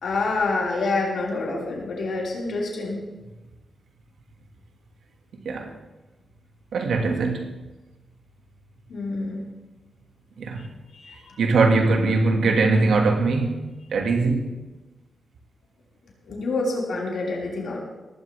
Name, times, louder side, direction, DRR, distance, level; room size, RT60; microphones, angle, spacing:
voice 1, 0.0-3.0 8.9-9.4 11.0-11.2 16.2-17.8, left 3 dB, 75° left, 5.1 m, -27 dB
voice 2, 5.3-5.7 6.7-7.5 10.4-10.7 11.4-13.6 13.9-14.6, right 3 dB, 85° right, 2.1 m, -21 dB
18.5 x 15.5 x 3.5 m
wide cardioid pair, 125°, 0 cm